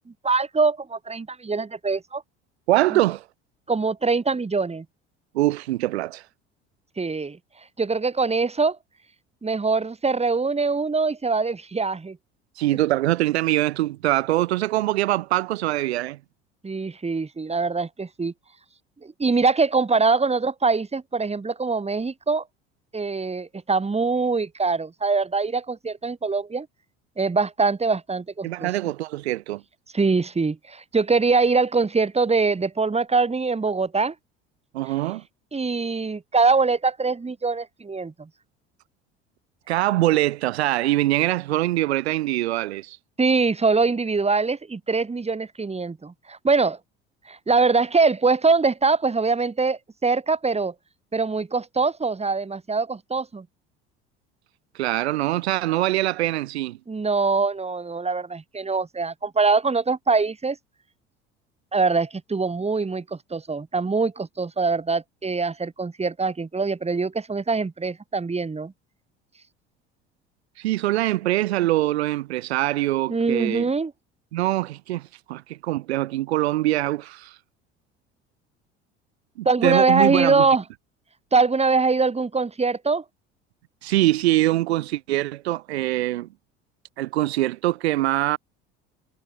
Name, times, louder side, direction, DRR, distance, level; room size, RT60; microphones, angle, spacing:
voice 1, 0.2-2.2 2.9-3.0 3.7-4.8 7.0-7.4 7.8-8.8 9.4-12.2 16.6-18.3 19.0-22.4 22.9-26.7 27.2-28.7 29.9-34.1 35.5-38.3 43.2-46.8 47.3-50.7 51.1-53.4 56.9-60.6 61.7-68.7 73.1-73.9 79.4-80.6 81.3-83.0, right 4 dB, 20° right, 3.1 m, -23 dB
voice 2, 2.7-3.2 5.3-6.2 12.6-16.2 28.4-29.6 34.7-35.2 39.7-43.0 54.7-56.8 70.6-73.7 74.3-77.4 79.4-80.5 83.8-86.3 87.0-88.4, right 16 dB, 80° right, 1.5 m, -23 dB
hypercardioid pair, 65°, 32 cm